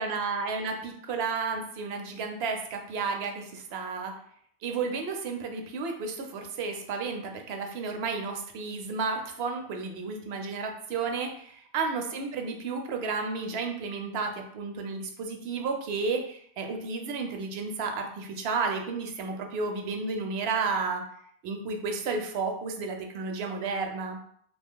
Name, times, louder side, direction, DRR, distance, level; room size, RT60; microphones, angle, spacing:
voice 1, 0.0-4.1 4.6-21.0 21.4-24.2, right 4 dB, 70° right, 4 dB, 0.8 m, -32 dB
2.9 x 2.2 x 3.6 m, 0.65 s
omnidirectional pair, 1.1 m